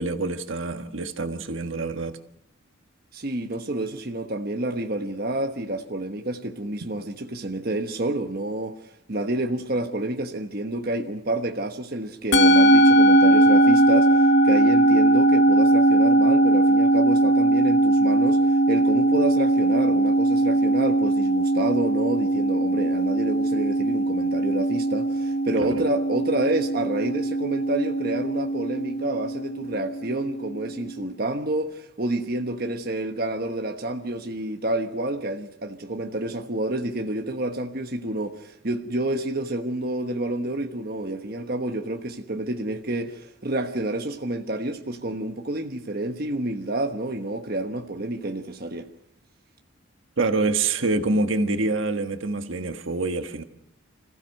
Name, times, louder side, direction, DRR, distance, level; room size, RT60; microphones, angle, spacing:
voice 1, 0.0-2.2 25.6-25.8 50.2-53.4, right 3 dB, 70° right, 1.4 m, -26 dB
voice 2, 3.1-8.8 9.1-48.9, right 1 dB, 45° right, 1.3 m, -29 dB
Musical instrument, 12.3-30.8, right 1 dB, 55° left, 1.2 m, -20 dB
26.5 x 15.5 x 6.6 m
head